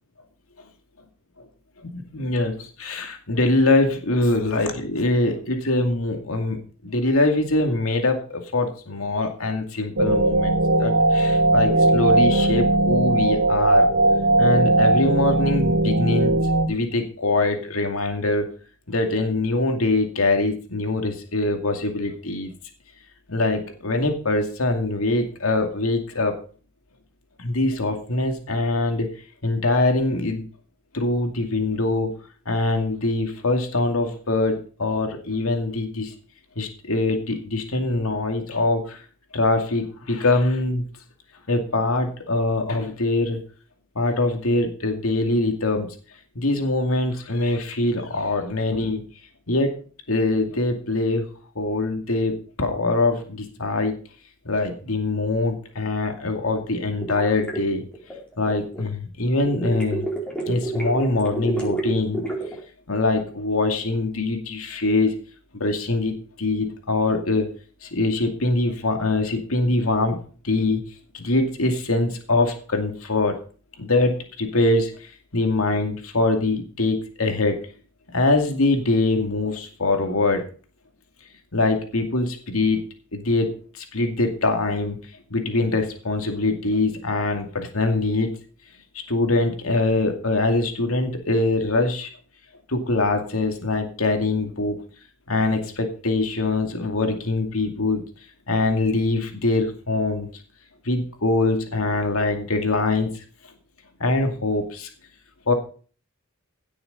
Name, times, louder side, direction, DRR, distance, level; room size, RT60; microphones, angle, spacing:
voice 1, 1.9-13.9 14.4-18.5 18.9-22.5 23.3-26.3 27.4-29.1 29.4-30.5 30.9-32.1 32.5-36.1 36.6-39.0 39.3-40.9 41.5-43.4 44.0-45.9 46.4-49.0 49.5-49.8 50.1-51.2 51.6-53.9 54.4-57.8 58.4-60.1 60.4-62.2 62.9-65.1 65.5-67.5 67.8-70.2 70.4-70.8 71.1-73.4 73.8-77.6 78.1-80.4 81.5-82.8 83.1-85.0 85.3-88.3 89.1-92.1 92.7-94.8 95.3-98.0 98.5-100.3 100.8-103.2 104.0-104.9 105.5-105.6, left 2 dB, 80° left, 4 dB, 2.4 m, -23 dB
sound 1, 10.0-16.7, right 2 dB, 75° right, 2.1 m, -19 dB
sound 2, 57.0-58.8 59.5-62.6, right 2 dB, 5° left, 4.6 m, -29 dB
16.5 x 6.9 x 5.4 m, 0.40 s
head